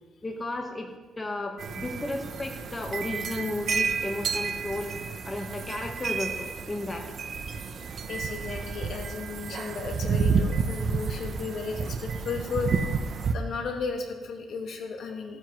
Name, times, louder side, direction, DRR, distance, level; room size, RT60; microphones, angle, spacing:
voice 1, 0.2-4.9 5.2-7.1, left 2 dB, 20° left, 3 dB, 1.3 m, -34 dB
sound 1, 1.6-13.3, right 5 dB, 55° right, 0.8 m, -30 dB
voice 2, 8.1-12.8 13.3-15.4, left 5 dB, 65° left, 3 dB, 1.8 m, -34 dB
16.5 x 9.5 x 3.2 m, 1.3 s
cardioid pair, 90°, 0 cm